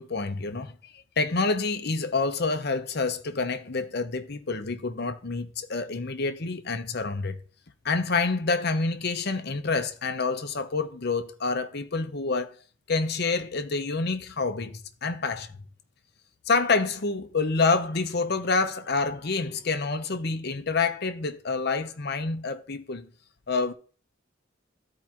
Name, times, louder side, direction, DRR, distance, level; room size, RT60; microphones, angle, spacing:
voice 1, 0.0-7.4 7.8-12.5 12.9-15.6 16.5-23.1 23.5-23.7, left 4 dB, 55° left, 0.8 m, -28 dB
14.0 x 4.8 x 3.0 m
head